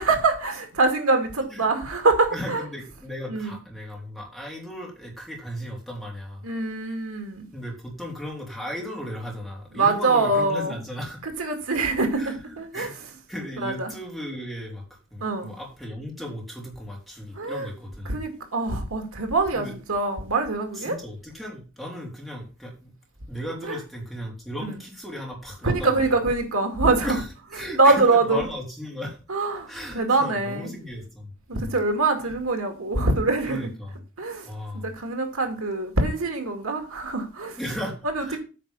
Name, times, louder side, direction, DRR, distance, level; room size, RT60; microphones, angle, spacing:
voice 1, 0.0-2.6 3.3-3.6 6.4-7.5 9.7-10.7 11.2-12.9 13.6-13.9 15.2-15.5 17.4-17.7 18.1-21.0 23.6-23.8 25.6-27.2 27.8-28.4 29.3-29.7 29.9-30.7 31.5-33.6 34.2-37.6 38.0-38.4, right 3 dB, 75° right, 2.2 m, -24 dB
voice 2, 2.3-6.4 7.5-11.2 12.2-12.9 13.3-14.8 15.1-18.2 19.5-19.8 20.7-22.9 23.3-26.2 27.0-27.3 27.5-29.2 29.7-31.8 33.4-33.9 34.4-34.9 37.6-38.4, equal, ahead, 3.3 m, -36 dB
9.1 x 5.0 x 7.0 m
head